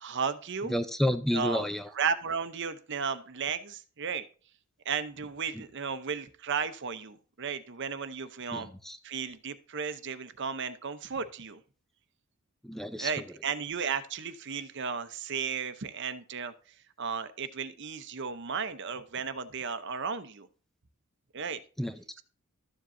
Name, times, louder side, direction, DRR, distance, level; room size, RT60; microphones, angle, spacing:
voice 1, 0.0-0.7 1.3-1.6 1.9-4.3 4.8-8.7 9.0-11.6 13.0-16.5 17.0-20.5 21.3-21.6, right 6 dB, 55° right, 12 dB, 0.7 m, -34 dB
voice 2, 0.7-1.9 8.5-9.0 12.6-13.1 21.8-22.2, equal, ahead, 10 dB, 0.4 m, -30 dB
13.0 x 7.5 x 2.6 m, 0.39 s
head